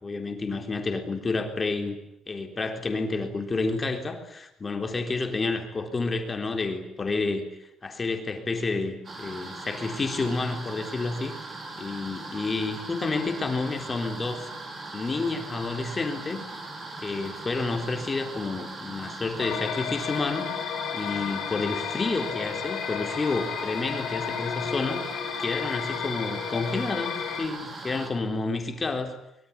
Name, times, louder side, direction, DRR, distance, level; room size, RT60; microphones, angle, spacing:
voice 1, 0.0-2.0 2.3-7.4 7.8-11.3 11.8-14.5 14.9-16.4 17.0-20.5 20.9-25.0 25.4-29.2, left 3 dB, 20° left, 5 dB, 3.7 m, -30 dB
sound 1, 9.0-28.1, right 2 dB, 25° right, 5.3 m, -39 dB
sound 2, 19.4-27.5, left 9 dB, 50° left, 5.2 m, -33 dB
24.5 x 23.0 x 9.8 m, 0.81 s
cardioid pair, 175°, 0 cm